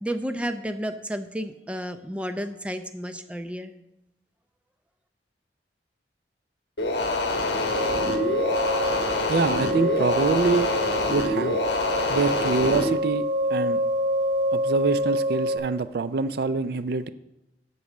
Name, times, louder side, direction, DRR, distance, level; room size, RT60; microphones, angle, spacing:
voice 1, 0.0-3.7, equal, 5° right, 8 dB, 0.5 m, -31 dB
sound 1, 6.8-12.9, left 2 dB, 70° left, 1.2 m, -26 dB
sound 2, 7.6-15.6, equal, 30° right, 3.7 m, -27 dB
voice 2, 9.3-10.7 11.1-11.6 12.1-13.8 14.5-17.1, right 4 dB, 60° right, 13 dB, 0.4 m, -25 dB
8.4 x 6.1 x 7.4 m, 0.88 s
head